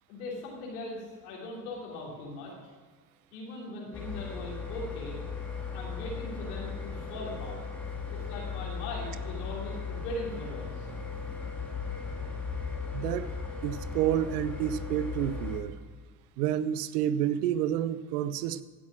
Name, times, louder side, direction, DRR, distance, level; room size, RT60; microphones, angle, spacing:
voice 1, 0.1-2.5 3.3-5.2 5.7-7.6 8.1-10.9, left 1 dB, 85° left, -4 dB, 3.2 m, -40 dB
sound 1, 3.9-15.6, left 5 dB, 5° left, 2.7 m, -37 dB
voice 2, 12.9-13.3 13.6-15.7 16.4-18.6, right 11 dB, 90° right, 16 dB, 0.7 m, -29 dB
15.5 x 6.2 x 6.0 m, 1.5 s
hypercardioid pair, 70°, 44 cm